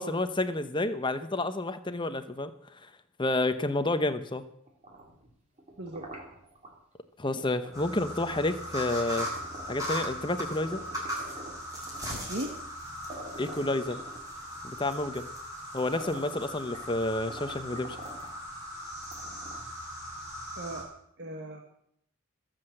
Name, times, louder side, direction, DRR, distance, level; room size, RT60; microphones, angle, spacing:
voice 1, 0.0-2.5 3.2-4.4 7.2-9.3 9.7-10.8 13.4-14.0 14.6-15.3 15.7-18.0, left 2 dB, 20° left, 10 dB, 0.9 m, -30 dB
sound 1, 4.7-6.8 7.6-7.8 8.2-10.3 10.6-12.3 12.8-12.9 13.1-14.6 15.3-15.4 15.7-17.0 17.3-18.4 19.0-19.8, right 1 dB, 30° right, 3.2 m, -47 dB
sound 2, 7.7-20.8, equal, 15° right, 6.2 m, -38 dB
voice 2, 20.6-20.9 21.2-21.6, right 1 dB, 50° right, 3 dB, 1.6 m, -37 dB
23.0 x 7.9 x 7.8 m, 0.72 s
head